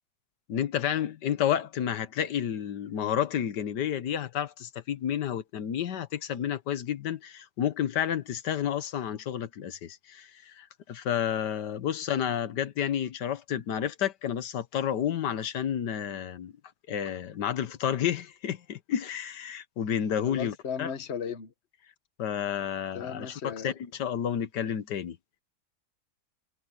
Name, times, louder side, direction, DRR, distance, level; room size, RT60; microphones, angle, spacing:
voice 1, 0.5-16.5 16.9-20.9 22.2-25.2, left 9 dB, 90° left, 1.7 m, -30 dB
voice 2, 20.3-21.5 22.9-23.7, left 7 dB, 45° left, 1.4 m, -36 dB
omnidirectional pair, 1.8 m